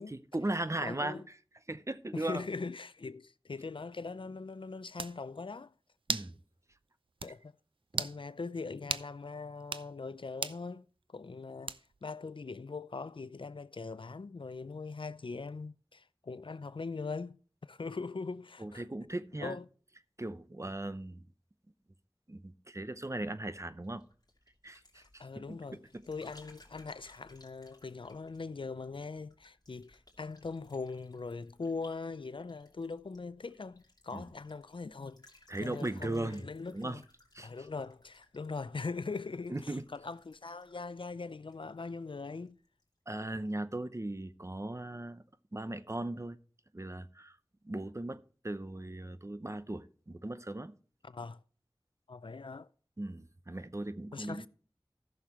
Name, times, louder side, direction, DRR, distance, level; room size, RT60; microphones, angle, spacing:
voice 1, 0.1-1.4 1.7-2.4 6.1-6.4 7.9-8.0 18.6-19.6 20.2-21.3 22.3-24.0 24.6-26.0 34.1-34.3 35.5-36.4 36.7-37.0 37.3-37.5 39.5-39.8 43.1-45.2 45.5-46.4 46.7-47.4 47.6-50.7 53.0-54.5, right 2 dB, 35° right, 0.7 m, -38 dB
voice 2, 0.8-1.2 2.1-5.7 7.2-7.5 8.0-10.8 11.1-11.7 12.0-18.8 19.4-19.6 24.9-35.2 35.6-37.0 37.4-39.6 39.9-42.6 51.0-51.4 52.1-52.7 54.1-54.5, left 4 dB, 75° left, 0.4 m, -41 dB
sound 1, 4.5-4.6 5.0-5.2 6.1-6.3 6.7-6.8 7.2-7.3 7.9-8.2 8.9-9.1 9.6-9.9 10.4-10.6 11.7-12.0, right 4 dB, 80° right, 0.4 m, -35 dB
sound 2, 23.8-42.2 42.5-42.9, left 2 dB, 50° left, 2.8 m, -64 dB
14.5 x 6.6 x 3.0 m
wide cardioid pair, 45°, 9 cm